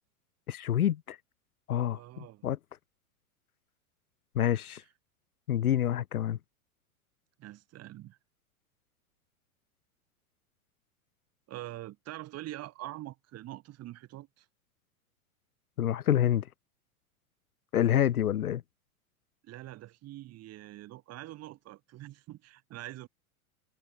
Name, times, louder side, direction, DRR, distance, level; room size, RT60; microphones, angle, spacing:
voice 1, 0.5-1.2 1.7-2.0 2.4-2.6 4.3-4.8 5.5-6.4 15.8-16.5 17.7-18.6, left 11 dB, 80° left, 0.8 m, -27 dB
voice 2, 1.9-2.5 4.7-4.8 7.4-8.2 11.5-14.4 19.4-23.1, right 15 dB, 35° right, 3.1 m, -44 dB
figure-of-eight pair, 95°, 43 cm